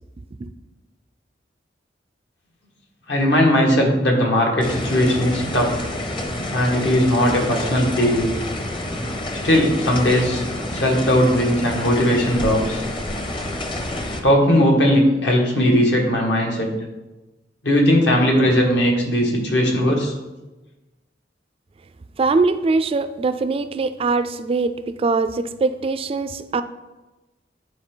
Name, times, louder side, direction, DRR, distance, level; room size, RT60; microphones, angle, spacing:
voice 1, 3.1-5.7 6.5-8.3 9.4-10.4 10.7-12.8 14.2-16.7 17.6-20.1, equal, 70° left, 0 dB, 1.7 m, -18 dB
sound 1, 4.6-14.2, left 1 dB, 30° left, 0.8 m, -28 dB
voice 2, 22.2-26.6, right 3 dB, 30° right, 11 dB, 0.3 m, -22 dB
10.0 x 4.5 x 3.8 m, 1.1 s
head